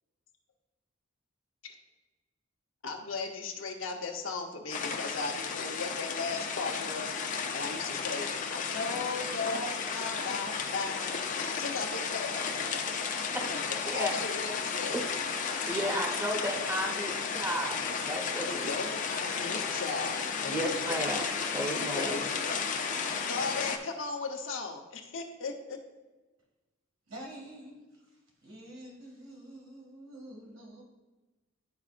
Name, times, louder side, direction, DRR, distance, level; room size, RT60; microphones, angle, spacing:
voice 1, 2.8-12.4 12.7-12.9 13.5-15.0 18.5-21.2 21.9-22.6 23.0-25.8, left 4 dB, 75° left, 2 dB, 0.9 m, -37 dB
sound 1, 4.7-23.8, left 5 dB, 40° left, 0.5 m, -33 dB
voice 2, 15.7-18.8 20.5-22.2, equal, 15° right, 0 dB, 1.0 m, -34 dB
voice 3, 27.1-28.0 28.4-30.8, right 1 dB, 70° right, -2 dB, 2.2 m, -47 dB
11.5 x 4.7 x 2.5 m, 1.2 s
head